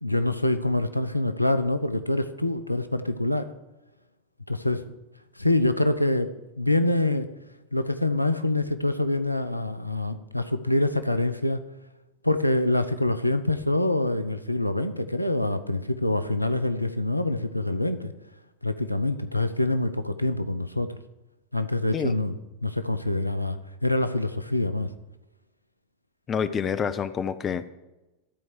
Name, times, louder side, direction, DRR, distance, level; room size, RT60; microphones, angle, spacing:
voice 1, 0.0-3.5 4.5-4.8 5.4-7.3 7.7-11.6 12.2-18.1 18.6-20.9 21.5-22.4 22.6-24.9, left 1 dB, 90° left, 10 dB, 0.6 m, -25 dB
voice 2, 26.3-27.7, left 7 dB, 25° left, 12 dB, 0.5 m, -28 dB
13.0 x 4.6 x 8.0 m, 1.0 s
figure-of-eight pair, 90°, 0 cm